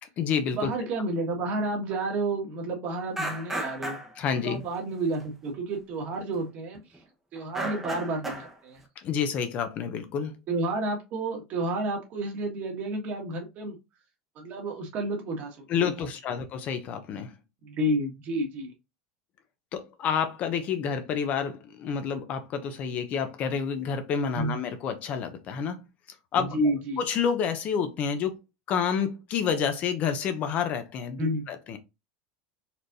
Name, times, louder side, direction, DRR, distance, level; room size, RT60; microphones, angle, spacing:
voice 1, 0.0-0.9 4.2-4.6 9.0-10.4 15.7-17.3 19.7-25.8 26.3-26.6 27.0-28.4 28.7-31.8, left 7 dB, 40° left, 0.7 m, -29 dB
voice 2, 0.5-4.0 4.4-6.8 7.3-8.8 10.5-13.8 14.3-15.6 17.6-18.7 24.3-24.5 26.3-27.0 31.2-31.4, right 1 dB, 45° right, 1.6 m, -30 dB
sound 1, 3.2-4.2 5.2-5.3 6.2-6.4 6.8-7.0 7.4-8.5, right 1 dB, 10° right, 0.9 m, -33 dB
4.3 x 3.2 x 2.6 m
supercardioid pair, 140°, 4 cm